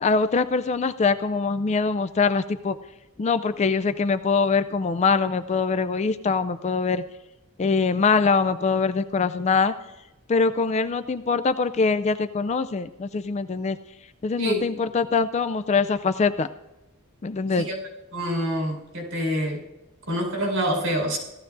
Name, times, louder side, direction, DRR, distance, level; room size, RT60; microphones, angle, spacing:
voice 1, 0.0-2.7 3.2-7.0 7.6-9.7 10.3-13.8 14.2-16.5 17.2-17.7, left 4 dB, 30° left, 11 dB, 0.3 m, -23 dB
voice 2, 18.1-19.6 20.1-21.2, equal, 80° right, -1 dB, 4.6 m, -26 dB
17.0 x 13.5 x 2.6 m, 0.98 s
head